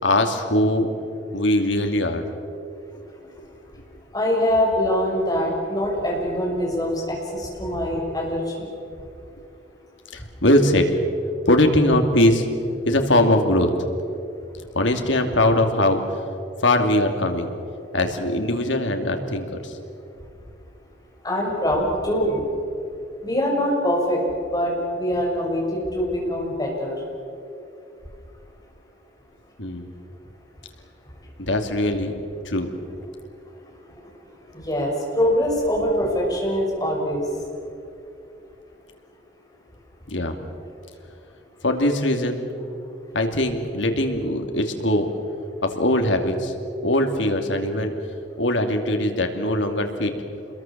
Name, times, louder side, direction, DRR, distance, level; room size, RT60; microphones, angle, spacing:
voice 1, 0.0-0.9 1.3-2.2 2.9-3.0 10.1-10.9 11.5-12.4 12.9-13.7 14.7-16.0 16.6-17.5 17.9-19.8 29.6-29.9 31.4-32.1 32.4-32.7 40.1-40.4 41.6-42.4 43.1-45.1 45.6-46.5 46.8-47.9 48.4-50.1, left 1 dB, 80° left, 5 dB, 2.7 m, -21 dB
voice 2, 4.1-8.7 21.2-22.4 23.2-24.2 24.5-26.9 34.5-37.2, equal, 20° left, -2 dB, 6.5 m, -23 dB
28.0 x 21.5 x 7.5 m, 2.6 s
head